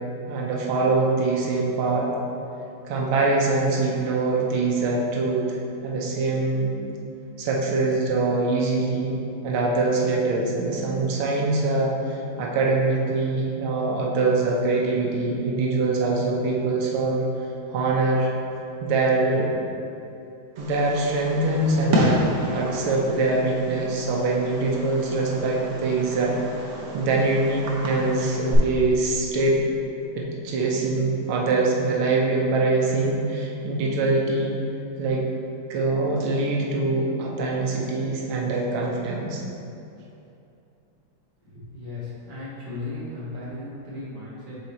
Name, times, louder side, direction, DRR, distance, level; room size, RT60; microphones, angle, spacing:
voice 1, 0.3-2.1 2.8-6.7 7.4-9.2 9.4-17.3 17.7-18.3 18.8-19.5 20.6-22.2 22.5-26.7 26.9-29.6 30.2-34.6 35.0-35.2 35.7-39.4, right 3 dB, 85° right, -2 dB, 1.6 m, -23 dB
Fireworks, 20.6-28.6, equal, 55° right, 0.9 m, -30 dB
voice 2, 41.4-44.5, left 2 dB, 25° right, -9 dB, 1.6 m, -36 dB
6.0 x 4.0 x 4.1 m, 2.7 s
omnidirectional pair, 2.2 m